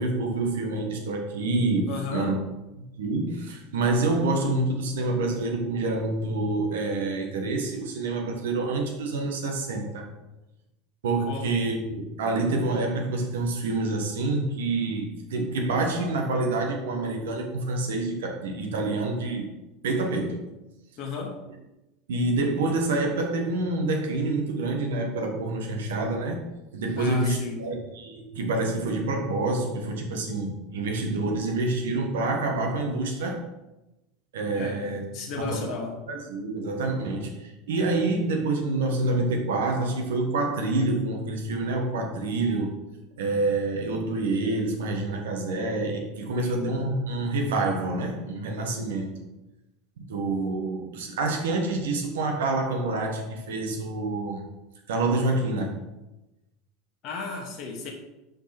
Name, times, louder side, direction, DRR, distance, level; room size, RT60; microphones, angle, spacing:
voice 1, 0.0-2.3 3.0-10.1 11.0-19.5 19.8-20.4 22.1-26.4 26.7-33.4 34.3-35.0 35.4-35.7 36.1-42.8 43.2-49.1 50.0-54.4 54.9-55.8, right 2 dB, 75° right, 2 dB, 1.3 m, -27 dB
voice 2, 1.9-2.4 11.3-11.5 21.0-21.4 27.0-27.6 34.5-36.0 46.3-46.8 57.0-57.9, left 5 dB, 50° left, 1 dB, 1.2 m, -34 dB
5.3 x 5.2 x 4.4 m, 0.99 s
hypercardioid pair, 85°, 0 cm